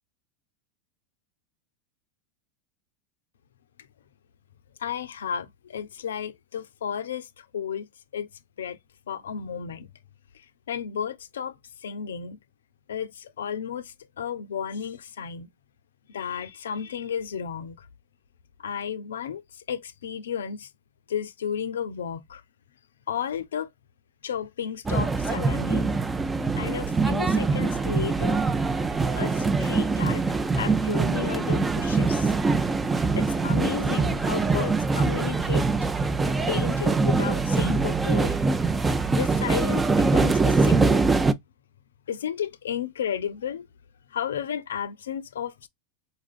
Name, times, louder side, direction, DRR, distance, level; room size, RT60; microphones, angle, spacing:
voice 1, 4.8-7.9 8.1-8.3 8.6-8.8 9.1-9.9 10.3-12.4 12.9-15.5 16.1-17.9 18.6-20.7 21.1-22.4 23.1-23.7 24.2-26.0 26.5-28.4 29.2-30.2 30.6-32.3 33.1-35.7 36.2-38.4 39.1-41.0 42.1-43.7 44.1-45.7, left 8 dB, 80° left, 0.4 m, -33 dB
sound 1, 24.9-41.3, right 4 dB, 15° right, 0.5 m, -23 dB
4.1 x 2.5 x 2.3 m
hypercardioid pair, 95°, 0 cm